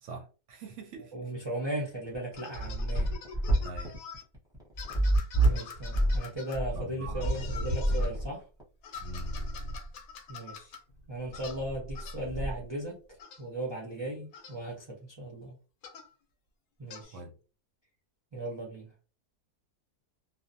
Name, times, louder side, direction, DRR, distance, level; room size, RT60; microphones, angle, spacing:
voice 1, 0.0-1.3 3.6-4.0 6.8-7.6 9.0-9.4 17.1-17.3, right 2 dB, 65° right, 0.8 m, -43 dB
voice 2, 1.1-3.1 5.4-8.4 10.3-10.7 11.1-13.0 13.4-15.6 16.8-17.2 18.3-18.9, right 1 dB, 45° right, 0.3 m, -37 dB
sound 1, 2.0-8.6, right 1 dB, 5° right, 0.6 m, -27 dB
sound 2, 2.3-4.2 4.8-6.6 7.2-8.1 8.8-10.8 11.3-11.6 11.9-12.2 13.2-13.4 14.3-14.6 15.8-16.1 16.9-17.1, left 6 dB, 75° left, 1.0 m, -46 dB
Purr, 7.2-8.3 8.9-10.0 10.7-12.8, right 1 dB, 45° left, 0.9 m, -39 dB
2.6 x 2.0 x 2.6 m
omnidirectional pair, 1.6 m